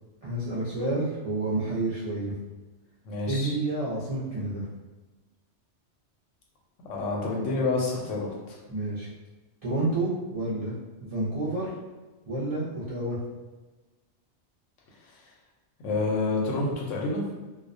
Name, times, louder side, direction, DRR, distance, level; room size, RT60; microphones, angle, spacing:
voice 1, 0.2-2.3 3.3-4.7 8.7-9.1 9.6-11.7 12.3-13.2, right 2 dB, 50° right, -10 dB, 0.4 m, -29 dB
voice 2, 3.0-3.5 6.8-8.6 15.8-17.3, left 3 dB, 90° left, -2 dB, 1.0 m, -28 dB
2.3 x 2.1 x 2.5 m, 1.2 s
omnidirectional pair, 1.2 m